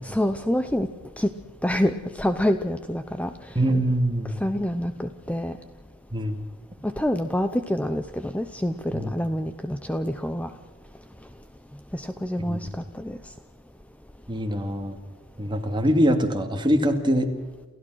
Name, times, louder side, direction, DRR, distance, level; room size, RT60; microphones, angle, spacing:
voice 1, 0.0-0.9 1.2-1.3 1.6-3.3 4.4-5.5 6.8-10.5 11.9-12.7 13.0-13.2, left 1 dB, 5° left, 9 dB, 0.7 m, -26 dB
voice 2, 3.5-4.4 6.1-6.4 8.9-9.1 12.5-12.6 14.3-15.0 15.4-17.3, equal, 20° right, 5 dB, 2.3 m, -23 dB
28.5 x 15.5 x 6.3 m, 1.3 s
head